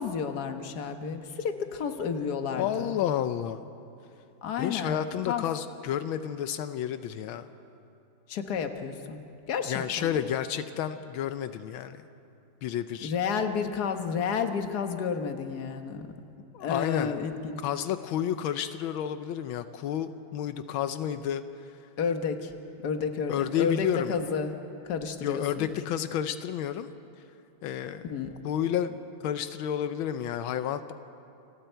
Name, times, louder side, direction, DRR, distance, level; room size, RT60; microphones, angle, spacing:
voice 1, 0.0-3.0 4.4-5.0 5.3-5.4 8.3-9.2 9.5-10.2 13.0-16.1 16.6-17.6 22.0-22.5 22.8-24.5 24.8-25.7 28.0-28.3, left 6 dB, 55° left, 6 dB, 1.7 m, -31 dB
voice 2, 2.5-3.7 4.6-7.5 9.7-12.0 12.6-13.1 16.5-17.1 17.6-21.8 23.3-24.4 25.2-26.9 27.6-28.0 28.4-30.9, left 10 dB, 85° left, 10 dB, 1.5 m, -31 dB
29.5 x 25.0 x 4.5 m, 2.7 s
omnidirectional pair, 2.2 m